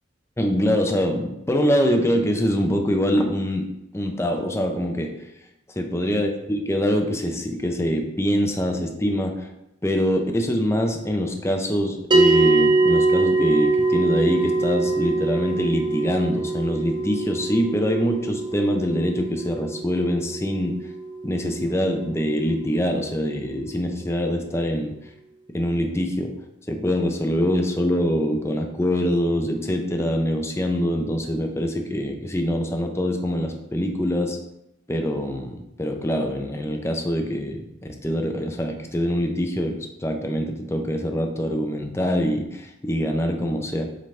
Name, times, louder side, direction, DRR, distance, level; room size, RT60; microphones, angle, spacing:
voice 1, 0.4-3.7 3.9-5.1 5.8-9.5 9.8-20.8 21.2-24.9 25.5-26.3 26.7-34.4 34.9-37.7 38.0-43.8, equal, 15° left, 4 dB, 0.6 m, -24 dB
sound 1, 12.1-22.7, right 3 dB, 25° right, 0.8 m, -23 dB
7.6 x 4.0 x 3.3 m, 0.86 s
head